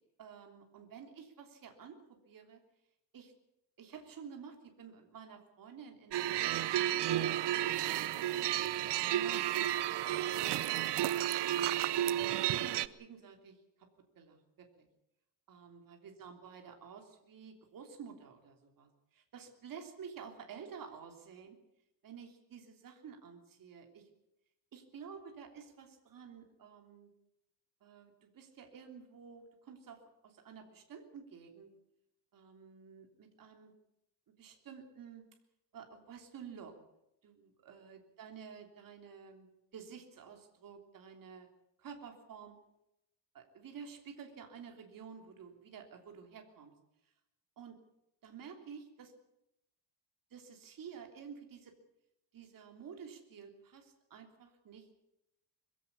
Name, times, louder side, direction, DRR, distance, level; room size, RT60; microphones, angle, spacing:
voice 1, 0.2-2.6 3.1-3.3 3.8-7.1 7.5-8.5 12.2-13.9 14.1-14.9 15.5-21.6 22.0-24.1 24.7-27.1 27.8-31.7 32.3-33.7 34.4-35.2 35.7-36.8 37.2-39.5 39.7-41.5 41.8-42.6 43.3-46.7 47.6-47.8 48.2-49.1 50.3-51.7 52.3-54.9, right 6 dB, 50° right, 4 dB, 3.4 m, -51 dB
sound 1, 6.1-12.9, right 12 dB, 70° right, 0.9 m, -32 dB
22.5 x 16.5 x 8.5 m, 0.85 s
cardioid pair, 170°, 43 cm